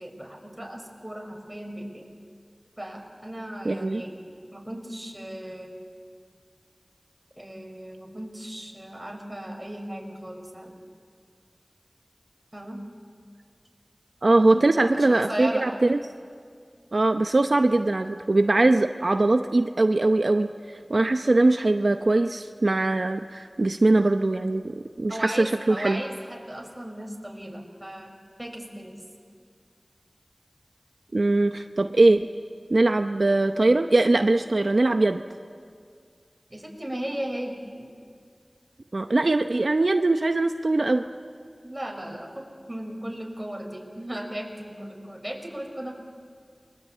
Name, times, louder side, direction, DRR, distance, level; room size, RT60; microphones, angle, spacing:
voice 1, 0.0-2.1 2.8-4.2 4.5-5.8 7.4-10.8 12.5-12.8 14.4-14.6 14.9-15.7 25.1-29.0 36.5-37.9 41.6-45.9, right 1 dB, 20° right, 2 dB, 5.3 m, -36 dB
voice 2, 3.6-4.0 14.2-16.0 16.9-26.0 31.1-32.3 32.7-35.2 38.9-41.0, right 2 dB, 75° right, 7 dB, 0.8 m, -21 dB
29.0 x 22.5 x 8.5 m, 2.1 s
wide cardioid pair, 45°, 0 cm